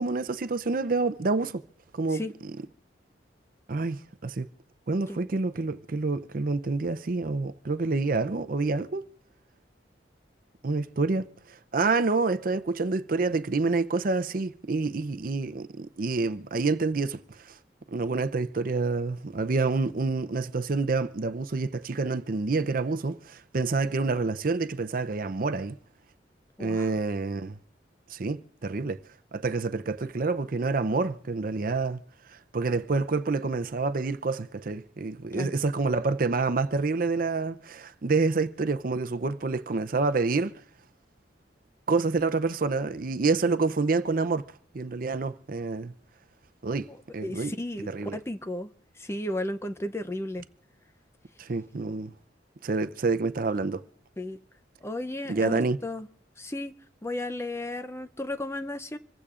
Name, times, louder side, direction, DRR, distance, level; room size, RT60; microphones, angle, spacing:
voice 1, 0.0-1.6 1.9-2.2 3.7-4.5 4.9-9.1 10.6-11.3 11.7-17.2 17.9-25.8 26.6-27.6 28.1-29.0 29.3-32.0 32.5-40.5 41.9-44.4 44.7-45.9 46.6-46.9 47.1-47.5 47.9-48.2 51.4-52.1 52.6-53.8 55.3-55.8, right 3 dB, 50° right, 0.6 m, -27 dB
voice 2, 26.6-26.9 35.3-35.5 46.9-48.7 49.0-50.4 54.2-54.4 54.8-56.1 56.4-56.7 57.0-59.0, left 1 dB, 15° left, 0.5 m, -34 dB
26.5 x 15.5 x 2.5 m
head